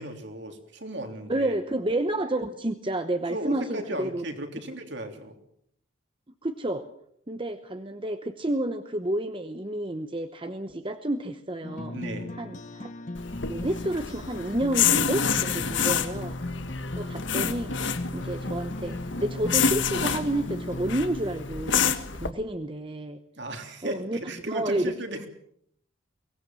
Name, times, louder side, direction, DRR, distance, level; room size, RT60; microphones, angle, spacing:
voice 1, 0.0-1.5 3.3-5.4 11.9-12.3 15.5-15.8 23.4-25.3, right 1 dB, 55° right, 5 dB, 3.3 m, -36 dB
voice 2, 1.3-4.2 6.4-6.8 7.3-12.0 12.4-12.9 13.5-16.4 17.0-17.8 18.1-23.2 23.8-24.9, right 1 dB, 25° right, 8 dB, 0.9 m, -30 dB
sound 1, 11.6-21.6, left 1 dB, 35° left, 1.0 m, -37 dB
sound 2, 13.1-22.3, left 7 dB, 60° left, 1.5 m, -28 dB
23.5 x 18.5 x 7.5 m, 0.70 s
head